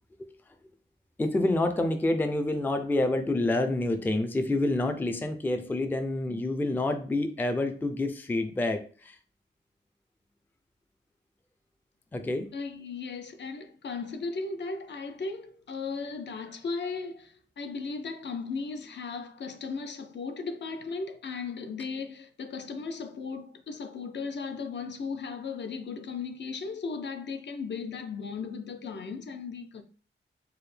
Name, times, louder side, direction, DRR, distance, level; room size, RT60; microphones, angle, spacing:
voice 1, 1.2-9.2 12.1-12.5, left 2 dB, 10° left, 0.3 m, -28 dB
voice 2, 12.5-29.8, left 4 dB, 65° left, 0.5 m, -36 dB
4.7 x 2.1 x 3.3 m
wide cardioid pair, 155°, 19 cm